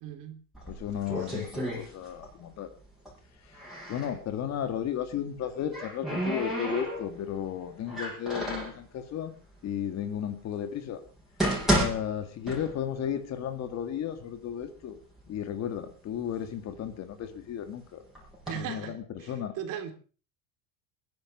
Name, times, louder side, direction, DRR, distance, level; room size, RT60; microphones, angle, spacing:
voice 1, 0.0-0.4 1.2-1.4 18.5-19.9, right 9 dB, 50° right, 7 dB, 2.8 m, -38 dB
sound 1, 0.5-2.4 2.7-4.2 5.3-7.3 7.9-8.8 9.6-9.7 10.3-10.4 11.1-13.1 13.4-13.5 14.2-14.3 14.7-15.3 15.8-17.5 18.2-18.5, equal, ahead, 7.1 m, -32 dB
voice 2, 0.7-2.7 3.4-3.6 3.9-9.3 9.6-11.0 11.7-15.0 15.3-18.0 18.5-19.5, left 9 dB, 40° left, 9 dB, 2.0 m, -34 dB
21.5 x 11.0 x 5.4 m, 0.39 s
cardioid pair, 150°, 42 cm